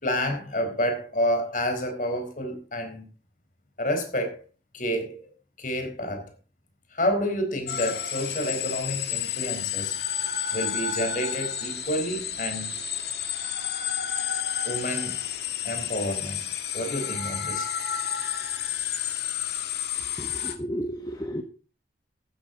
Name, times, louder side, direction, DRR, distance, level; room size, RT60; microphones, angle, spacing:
voice 1, 0.0-3.1 3.8-4.4 4.7-5.3 5.6-6.3 6.9-10.0 10.5-12.7 14.6-15.1 15.6-16.4 16.7-17.7, equal, 45° left, 4.2 m, -29 dB
sound 1, 7.7-20.5, left 9 dB, 60° left, 2.2 m, -31 dB
voice 2, 20.2-21.4, equal, 20° left, 1.1 m, -32 dB
14.5 x 12.5 x 3.9 m
head